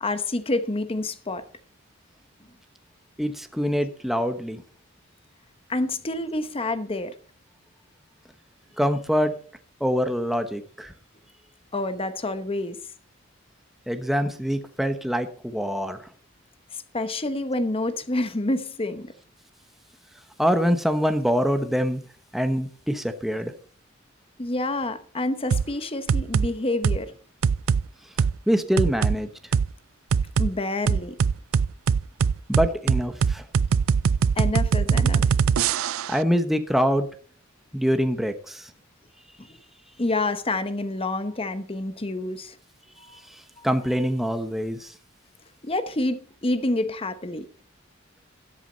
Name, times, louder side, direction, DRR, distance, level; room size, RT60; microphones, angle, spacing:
voice 1, 0.0-1.5 5.7-7.2 11.7-12.8 16.7-19.1 24.4-27.1 30.4-31.2 34.4-35.4 39.4-39.6 40.0-42.6 43.0-43.2 43.6-43.7 45.6-47.5, left 2 dB, 30° left, 0.9 m, -28 dB
voice 2, 3.2-4.6 8.8-9.3 9.8-10.9 13.9-16.0 20.4-22.0 22.3-23.5 28.5-29.3 32.5-33.4 36.1-37.1 37.7-38.7 43.1-44.9, equal, ahead, 1.0 m, -24 dB
sound 1, 25.5-25.7 26.1-26.5 26.8-27.0 27.4-27.8 28.2-28.3 28.8-29.2 29.5-29.7 30.1-30.5 30.9-36.2, right 6 dB, 85° right, 0.4 m, -21 dB
13.0 x 11.0 x 4.0 m
head